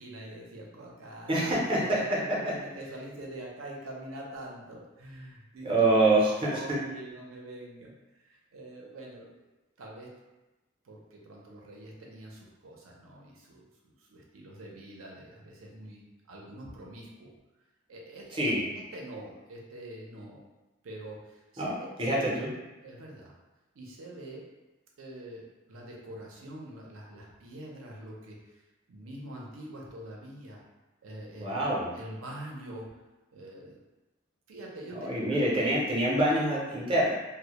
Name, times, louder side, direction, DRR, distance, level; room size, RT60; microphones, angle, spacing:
voice 1, 0.0-6.0 6.4-7.9 8.2-9.4 9.8-10.2 10.8-17.3 17.9-20.4 20.8-22.1 22.8-23.3 23.7-24.5 25.0-28.6 28.9-30.6 31.0-33.0 33.3-33.8 34.5-35.4, right 1 dB, 80° right, -2 dB, 0.5 m, -45 dB
voice 2, 1.3-2.0 2.4-2.5 5.6-6.6 18.3-18.6 21.6-21.7 22.0-22.5 31.4-31.9 35.0-37.1, right 1 dB, 25° right, -5 dB, 0.5 m, -25 dB
2.1 x 2.1 x 2.9 m, 1.1 s
head